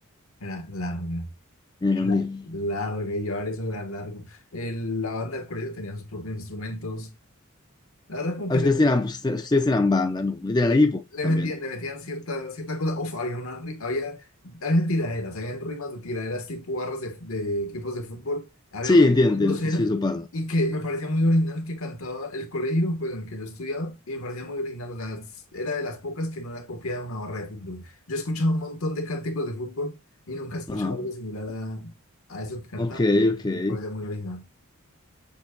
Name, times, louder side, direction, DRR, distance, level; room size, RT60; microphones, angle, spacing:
voice 1, 0.4-1.3 2.0-2.2 2.5-7.1 8.1-8.8 10.6-10.8 11.1-19.9 20.3-30.0 30.3-31.9 32.3-33.2 33.5-34.4, left 1 dB, 75° left, 1.2 m, -30 dB
voice 2, 1.8-2.4 8.5-11.5 18.8-20.2 30.7-31.0 32.8-33.8, left 2 dB, 20° left, 0.4 m, -22 dB
7.2 x 2.7 x 2.5 m
head